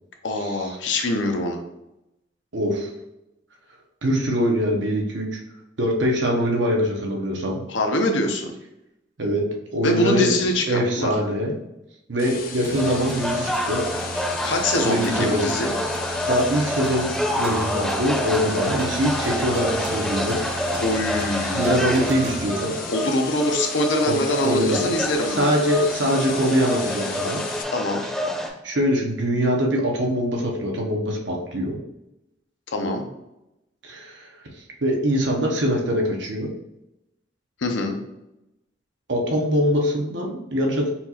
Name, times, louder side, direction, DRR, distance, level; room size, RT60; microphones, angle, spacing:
voice 1, 0.2-1.6 7.7-8.5 9.8-11.1 14.4-15.7 20.8-22.0 22.9-25.5 27.7-28.0 32.7-33.0 37.6-38.0, left 1 dB, 90° left, 3 dB, 0.7 m, -24 dB
voice 2, 2.5-2.9 4.0-5.4 5.8-7.6 9.2-10.3 10.7-11.6 12.1-13.8 14.8-15.5 16.3-17.1 17.3-20.4 21.5-22.8 24.1-24.2 24.4-24.9 25.3-27.4 28.4-31.8 33.8-34.3 34.8-36.5 39.1-40.9, equal, 85° right, 0 dB, 1.0 m, -23 dB
sound 1, 12.2-27.6, left 6 dB, 50° left, 0.4 m, -36 dB
sound 2, 12.6-23.2, right 3 dB, 60° right, 0.4 m, -35 dB
sound 3, 12.7-28.5, left 1 dB, 5° left, 0.6 m, -28 dB
4.3 x 2.4 x 4.2 m, 0.89 s
head